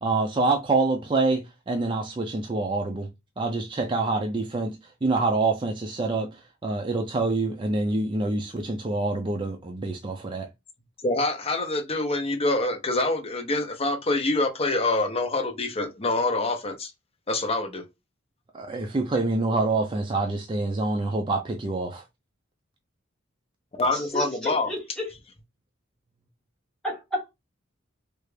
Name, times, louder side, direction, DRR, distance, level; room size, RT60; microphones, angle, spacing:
voice 1, 0.0-3.1 3.4-4.8 5.0-10.5 18.5-22.0, right 3 dB, 25° right, 0.4 m, -26 dB
voice 2, 11.0-16.9 17.3-17.8 23.8-24.7, left 2 dB, 30° left, 0.7 m, -26 dB
voice 3, 23.9-25.1 26.8-27.4, equal, 5° left, 1.3 m, -32 dB
3.3 x 2.4 x 3.2 m
head